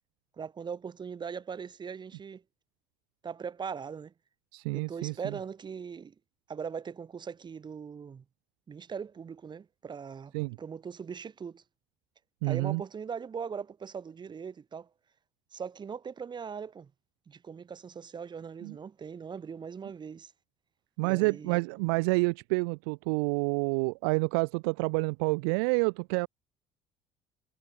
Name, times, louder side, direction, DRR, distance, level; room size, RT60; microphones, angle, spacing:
voice 1, 0.4-2.4 3.2-4.1 4.7-6.1 6.5-8.2 8.7-10.3 10.6-11.6 12.4-14.9 15.5-16.9 17.3-20.3 21.0-21.6, right 6 dB, 35° right, 7.4 m, -40 dB
voice 2, 4.5-5.1 10.3-10.6 12.4-12.8 18.6-18.7 21.0-26.3, right 32 dB, 85° right, 1.3 m, -28 dB
supercardioid pair, 80°, 12 cm